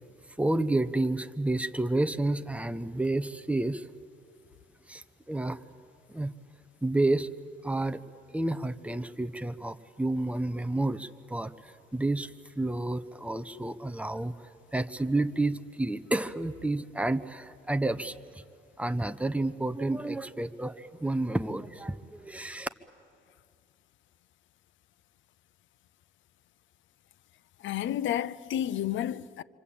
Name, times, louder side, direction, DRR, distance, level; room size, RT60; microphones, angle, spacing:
voice 1, 0.4-3.8 4.9-5.6 6.1-6.3 6.8-7.3 7.6-8.0 8.3-18.2 18.8-22.7, right 2 dB, 5° right, 1.0 m, -30 dB
voice 2, 27.6-29.4, left 11 dB, 75° left, 0.7 m, -31 dB
27.0 x 25.5 x 8.7 m
cardioid pair, 90°, 20 cm